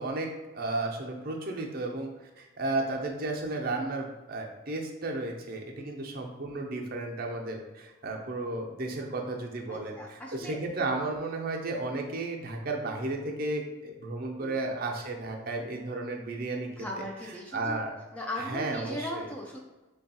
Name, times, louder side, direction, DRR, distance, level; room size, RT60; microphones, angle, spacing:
voice 1, 0.0-16.7 17.5-17.9 18.4-19.3, right 2 dB, 45° right, 1 dB, 0.5 m, -33 dB
voice 2, 9.7-10.6 14.4-14.6 16.8-17.9 18.1-19.6, left 1 dB, 5° left, -2 dB, 0.3 m, -38 dB
3.3 x 2.3 x 4.1 m, 1.1 s
head